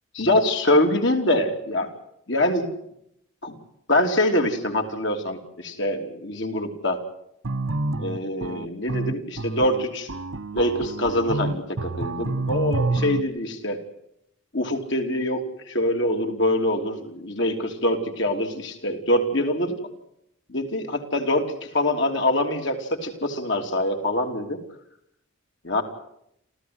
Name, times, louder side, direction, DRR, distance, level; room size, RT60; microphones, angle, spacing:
voice 1, 0.1-1.9 2.3-2.7 3.4-3.5 3.9-7.0 8.0-10.1 10.5-13.8 14.5-19.8 20.5-24.6 25.6-25.8, left 1 dB, 60° left, 4 dB, 3.4 m, -24 dB
sound 1, 7.4-13.2, right 2 dB, 75° right, 1.1 m, -28 dB
28.0 x 14.5 x 9.7 m, 0.77 s
head